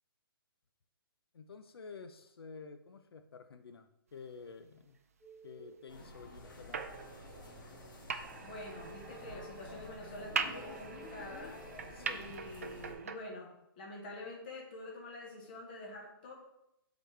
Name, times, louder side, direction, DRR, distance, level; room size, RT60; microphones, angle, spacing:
voice 1, 1.3-5.0 5.4-6.8 11.9-12.4, left 5 dB, 80° left, 8 dB, 0.6 m, -50 dB
Telephone, 5.2-5.7 8.6-9.7 10.9-11.7, right 3 dB, 15° right, 0.8 m, -55 dB
sound 1, 5.9-12.9, left 1 dB, 55° left, 1.6 m, -51 dB
sound 2, 6.7-13.2, right 5 dB, 40° right, 0.4 m, -42 dB
voice 2, 8.4-11.6 12.1-16.3, left 2 dB, 25° left, -2 dB, 1.2 m, -47 dB
8.0 x 4.1 x 3.3 m, 0.84 s
hypercardioid pair, 180°, 13 cm